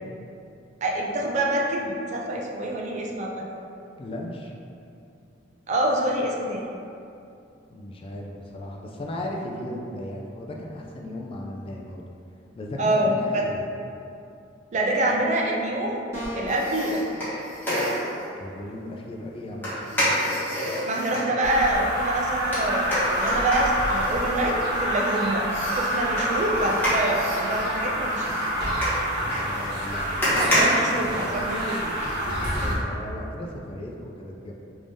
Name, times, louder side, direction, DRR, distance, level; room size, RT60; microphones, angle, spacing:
voice 1, 0.8-3.6 5.7-6.7 12.8-13.4 14.7-16.0 16.3-17.2 20.8-28.3 30.3-31.9, right 1 dB, 40° right, -1 dB, 0.4 m, -26 dB
voice 2, 4.0-4.5 7.7-12.0 12.6-13.7 18.4-20.2 29.3-30.6 32.5-34.5, left 1 dB, 30° left, -1 dB, 0.3 m, -36 dB
sound 1, 16.1-16.7, equal, 20° right, 1.5 m, -33 dB
sound 2, 16.5-18.3 19.6-21.3 22.5-25.0 25.5-31.7 32.1-32.2, equal, 10° left, 1.0 m, -28 dB
sound 3, 21.4-32.8, equal, 60° right, 1.1 m, -27 dB
3.4 x 3.3 x 2.6 m, 2.6 s
head